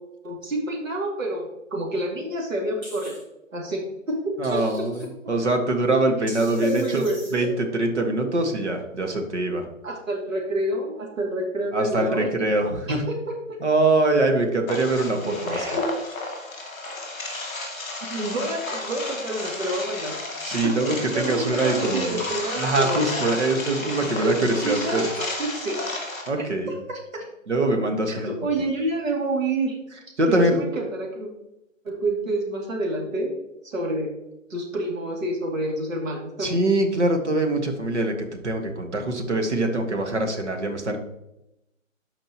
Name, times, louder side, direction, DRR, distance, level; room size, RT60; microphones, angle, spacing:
voice 1, 0.2-3.2 3.5-4.9 6.6-7.5 9.8-12.3 12.9-13.6 15.3-15.9 18.1-20.2 20.6-23.1 24.0-24.3 24.6-25.8 26.4-27.3 28.1-29.8 30.3-31.3 31.8-33.3 33.6-34.1 34.5-36.6, right 1 dB, 75° right, 0 dB, 2.6 m, -28 dB
sound 1, 2.8-3.2 4.4-5.1 6.3-7.4, equal, 25° right, 2.6 m, -43 dB
voice 2, 4.4-7.0 7.3-9.7 11.7-13.0 13.6-15.6 20.4-22.2 22.6-25.0 26.3-26.7 27.5-28.3 30.2-30.6 36.4-41.0, right 2 dB, 60° right, 3 dB, 1.7 m, -23 dB
sound 2, 14.7-26.3, left 2 dB, 5° left, 1.4 m, -32 dB
13.0 x 5.3 x 3.0 m, 0.87 s
hypercardioid pair, 175°, 40 cm